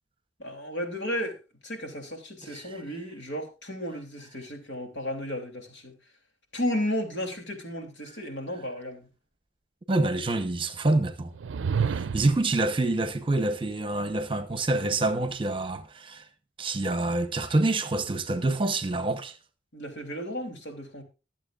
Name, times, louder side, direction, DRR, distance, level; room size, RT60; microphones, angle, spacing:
voice 1, 0.4-1.3 1.6-5.9 6.5-9.1 19.7-21.0, equal, 75° left, 3.0 m, -33 dB
voice 2, 2.4-2.8 9.9-11.3 11.8-16.2 16.6-19.4, right 2 dB, 25° right, 1.0 m, -27 dB
sound 1, 11.3-12.5, right 6 dB, 85° right, 0.4 m, -29 dB
22.5 x 7.6 x 2.5 m
head